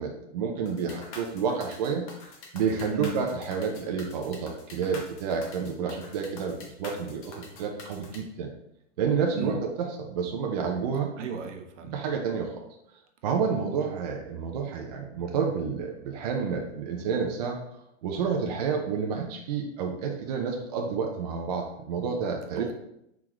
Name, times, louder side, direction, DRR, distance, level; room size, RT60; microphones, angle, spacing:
voice 1, 0.0-2.1 2.5-8.5 9.0-11.1 11.8-12.6 13.2-17.6 18.0-22.7, right 6 dB, 35° right, 1 dB, 0.4 m, -29 dB
sound 1, 0.7-8.2, left 3 dB, 30° left, 0.8 m, -45 dB
voice 2, 11.2-11.9 22.6-22.7, right 7 dB, 70° right, 5 dB, 0.9 m, -35 dB
4.6 x 3.9 x 3.0 m, 0.78 s
hypercardioid pair, 160°, 37 cm